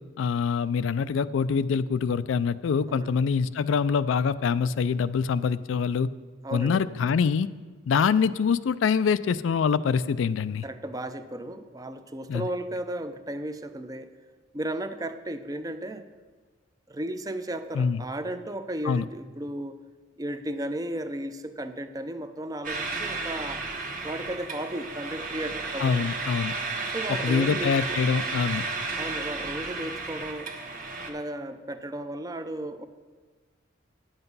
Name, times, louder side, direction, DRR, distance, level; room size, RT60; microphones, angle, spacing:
voice 1, 0.2-6.1 6.5-7.5 7.9-10.6 12.3-12.5 17.7-18.0 18.8-19.0 25.8-26.6 27.2-28.6, left 6 dB, 80° left, 15 dB, 0.3 m, -25 dB
voice 2, 6.4-6.9 10.6-14.1 14.5-16.0 16.9-19.7 20.2-23.6 24.0-26.1 26.9-28.0 29.0-30.5 31.1-32.9, right 1 dB, 20° right, 10 dB, 0.5 m, -34 dB
sound 1, 22.6-31.1, right 3 dB, 45° right, 1.2 m, -33 dB
9.7 x 8.0 x 5.4 m, 1.4 s
head